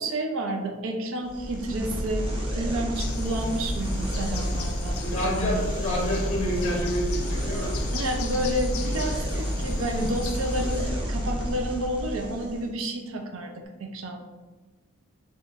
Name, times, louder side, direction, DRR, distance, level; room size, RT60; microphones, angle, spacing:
voice 1, 0.0-2.3 2.5-5.0 7.9-14.2, right 1 dB, 65° right, 3 dB, 0.5 m, -30 dB
sound 1, 1.2-12.7, equal, 25° right, 0.6 m, -30 dB
sound 2, 2.9-10.9, left 9 dB, 75° left, 0.4 m, -41 dB
voice 2, 5.0-7.8, equal, 30° left, -2 dB, 0.7 m, -28 dB
4.2 x 3.0 x 2.4 m, 1.2 s
head